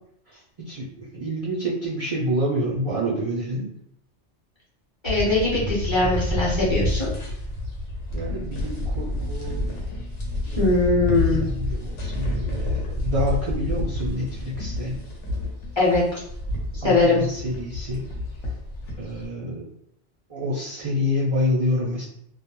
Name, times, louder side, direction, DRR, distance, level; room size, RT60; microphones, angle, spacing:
voice 1, 0.7-3.7 8.1-9.7 10.5-10.7 11.2-15.0 16.8-18.1 19.0-19.6 20.3-22.0, equal, 65° right, -5 dB, 0.3 m, -28 dB
voice 2, 5.0-7.1 10.5-11.4 15.8-16.0 16.8-17.3, left 2 dB, 30° left, -7 dB, 0.7 m, -21 dB
sound 1, 5.1-19.3, left 1 dB, 90° left, 1.0 m, -29 dB
2.3 x 2.0 x 2.9 m, 0.72 s
omnidirectional pair, 1.2 m